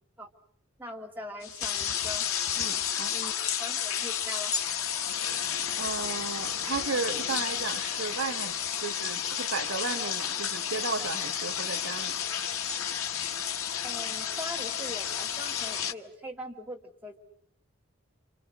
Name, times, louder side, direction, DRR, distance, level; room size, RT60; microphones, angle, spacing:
voice 1, 0.8-2.3 3.1-3.3 3.6-4.5 13.8-17.2, equal, 10° right, 0 dB, 1.9 m, -41 dB
sound 1, 1.4-15.9, left 9 dB, 85° left, 1.2 m, -31 dB
voice 2, 2.6-3.2 5.8-12.2, right 4 dB, 75° right, 11 dB, 1.4 m, -34 dB
28.0 x 27.5 x 6.4 m, 0.63 s
head